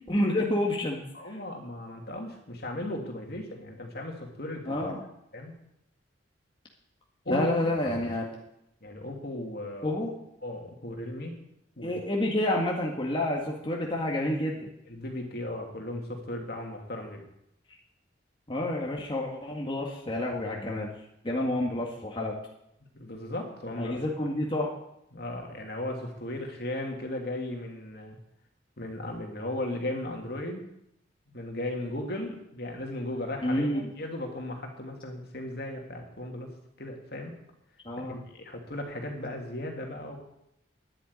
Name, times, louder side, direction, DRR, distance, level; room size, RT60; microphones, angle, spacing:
voice 1, 0.1-1.4 4.7-5.0 7.3-8.3 9.8-10.1 11.8-14.7 18.5-20.9 21.2-22.4 23.8-24.7 33.4-33.8 37.9-38.2, left 1 dB, 25° left, -2 dB, 1.9 m, -29 dB
voice 2, 1.1-4.9 5.3-5.5 7.2-7.5 8.0-8.1 8.8-10.0 10.4-11.3 11.8-11.9 14.9-17.2 22.9-24.0 25.1-28.2 28.8-30.7 31.3-36.5 36.8-37.3 38.1-40.2, left 1 dB, 55° left, 2 dB, 2.7 m, -36 dB
10.5 x 9.4 x 9.7 m, 0.80 s
head